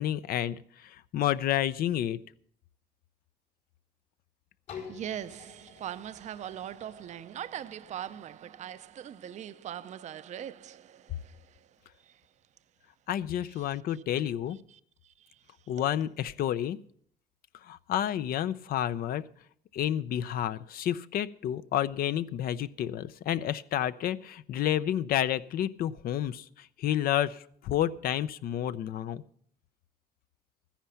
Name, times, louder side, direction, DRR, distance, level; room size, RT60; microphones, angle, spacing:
voice 1, 0.0-2.2 13.1-14.6 15.7-16.8 17.6-19.2 19.7-29.2, left 11 dB, 60° left, 0.6 m, -30 dB
sound 1, 4.7-10.4 11.0-11.1, left 7 dB, 80° left, 4.5 m, -50 dB
voice 2, 4.9-11.7 12.0-12.2 13.6-13.7 14.7-15.3 15.8-15.9, right 10 dB, 45° right, 0.5 m, -41 dB
13.0 x 10.0 x 5.7 m
cardioid pair, 110°, 17 cm